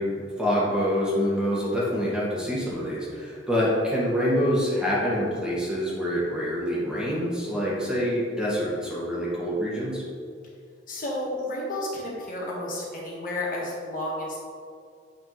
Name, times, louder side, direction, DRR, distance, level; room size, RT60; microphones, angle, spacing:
voice 1, 0.0-10.0, equal, 5° right, -7 dB, 1.6 m, -26 dB
voice 2, 10.9-14.4, left 1 dB, 50° left, -4 dB, 1.5 m, -31 dB
8.2 x 5.8 x 3.1 m, 2.3 s
head